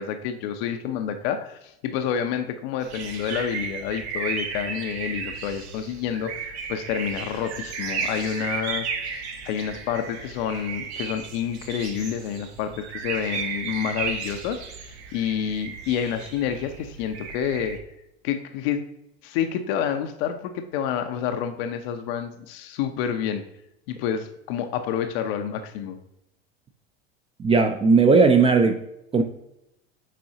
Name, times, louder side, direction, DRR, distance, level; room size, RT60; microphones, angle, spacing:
voice 1, 0.0-17.8 18.2-18.8 19.2-23.4 23.9-26.0, left 8 dB, 65° left, 7 dB, 0.7 m, -29 dB
sound 1, 2.8-17.8, right 5 dB, 90° right, 1.1 m, -34 dB
voice 2, 27.4-28.8 29.1-29.2, right 4 dB, 20° right, 5 dB, 0.5 m, -17 dB
7.4 x 4.6 x 2.7 m, 0.84 s
hypercardioid pair, 105°, 32 cm